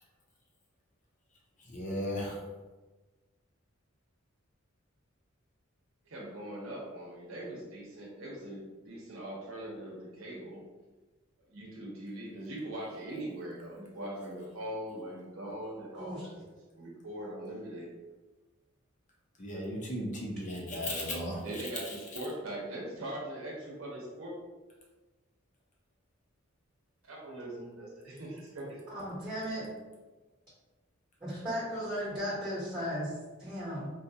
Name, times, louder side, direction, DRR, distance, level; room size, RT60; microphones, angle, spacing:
voice 1, 1.7-2.4 19.4-21.4, left 1 dB, 40° left, -2 dB, 0.8 m, -35 dB
voice 2, 6.1-10.6 11.5-16.3 16.8-17.9 21.4-24.3 27.0-28.8, right 1 dB, 85° right, -3 dB, 0.8 m, -41 dB
voice 3, 15.9-16.3 28.9-29.7 31.2-33.0 33.4-33.9, equal, 15° right, -8 dB, 1.1 m, -36 dB
3.9 x 2.3 x 2.7 m, 1.2 s
head